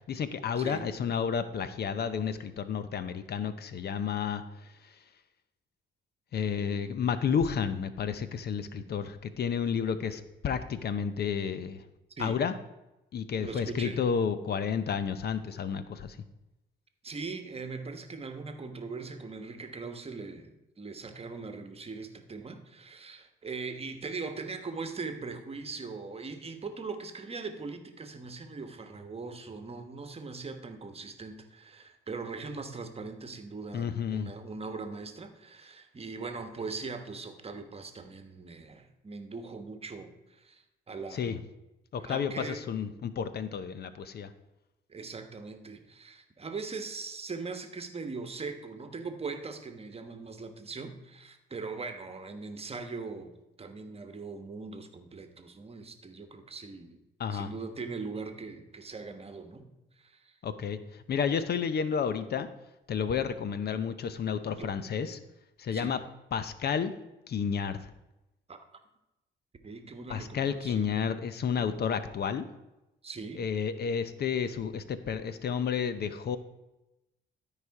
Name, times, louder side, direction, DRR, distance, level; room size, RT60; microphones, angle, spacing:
voice 1, 0.1-4.9 6.3-11.8 12.2-12.5 13.1-16.2 33.7-34.3 41.1-41.4 41.9-44.3 57.2-57.5 60.4-62.5 62.9-65.2 65.6-66.0 66.3-66.9 67.3-67.9 70.1-72.5 73.3-76.4, left 7 dB, 55° left, 12 dB, 0.7 m, -31 dB
voice 2, 6.6-6.9 12.2-12.4 13.4-14.0 17.0-41.4 42.0-42.6 44.9-53.3 53.6-57.0 57.3-59.7 60.0-60.4 64.6-64.7 65.7-65.9 68.5-68.7 69.6-70.9 73.0-73.4, right 4 dB, 30° right, 7 dB, 1.2 m, -40 dB
12.5 x 4.9 x 4.8 m, 0.95 s
cardioid pair, 90°, 20 cm